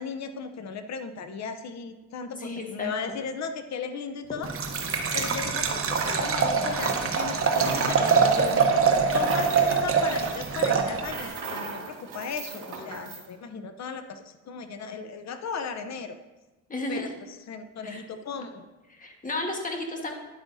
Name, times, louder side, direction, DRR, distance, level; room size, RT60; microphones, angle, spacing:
voice 1, 0.0-4.5 5.1-8.7 9.1-16.2 16.9-18.7, left 5 dB, 55° left, 9 dB, 0.8 m, -36 dB
voice 2, 2.4-3.2 16.7-17.1 17.8-18.0 18.9-20.1, left 2 dB, 25° left, 2 dB, 1.6 m, -33 dB
Liquid, 4.4-11.3, right 5 dB, 40° right, 1.0 m, -24 dB
sound 1, 4.5-6.5 6.7-13.2, right 4 dB, 65° right, 2.3 m, -38 dB
10.5 x 8.2 x 2.7 m, 1.1 s
cardioid pair, 100°, 34 cm